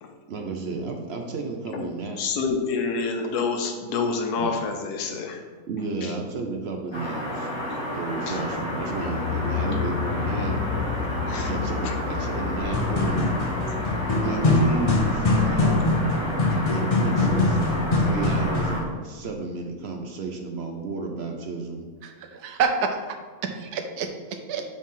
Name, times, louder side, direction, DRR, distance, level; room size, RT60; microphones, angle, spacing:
voice 1, 0.3-2.4 4.4-4.6 5.7-7.5 7.9-10.6 11.4-13.4 14.2-16.1 16.7-17.6 18.0-21.9, right 3 dB, 60° right, 3 dB, 0.7 m, -32 dB
voice 2, 2.2-5.4 6.0-6.1 7.7-7.9 8.3-8.4 11.3-11.5 11.8-11.9, left 4 dB, 90° left, 4 dB, 1.3 m, -28 dB
sound 1, 6.9-18.8, equal, 15° left, 1.7 m, -31 dB
sound 2, 8.4-16.6, left 7 dB, 65° left, 0.8 m, -32 dB
sound 3, 12.7-18.8, left 2 dB, 45° left, 0.5 m, -23 dB
voice 3, 22.0-23.0 23.4-24.6, right 5 dB, 85° right, 5 dB, 1.2 m, -28 dB
4.7 x 4.3 x 5.5 m, 1.5 s
omnidirectional pair, 1.6 m